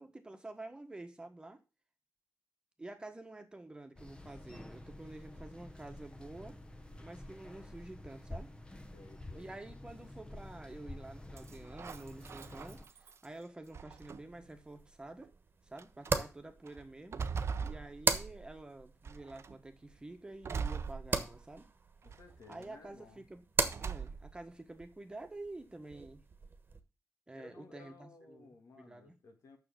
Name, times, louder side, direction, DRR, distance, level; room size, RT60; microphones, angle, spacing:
voice 1, 0.0-1.6 2.8-6.6 7.0-8.5 9.3-15.3 15.7-17.2 17.6-21.7 22.5-23.4 23.8-26.2 27.3-29.1, right 2 dB, 15° right, 5 dB, 1.4 m, -49 dB
sound 1, 4.0-12.8, left 1 dB, 15° left, 1.0 m, -49 dB
voice 2, 8.9-9.6 22.0-23.2 27.3-29.6, left 3 dB, 80° left, 4 dB, 2.3 m, -57 dB
sound 2, 11.4-13.2 13.7-14.5 15.2-15.3 15.8-16.1 16.7-18.6 19.0-19.6 20.4-21.6 22.0-22.6 23.6-24.4, right 5 dB, 55° right, 0.7 m, -41 dB
sound 3, 14.0-26.8, right 4 dB, 40° right, 1.4 m, -40 dB
6.9 x 6.4 x 7.7 m, 0.30 s
wide cardioid pair, 135°, 5 cm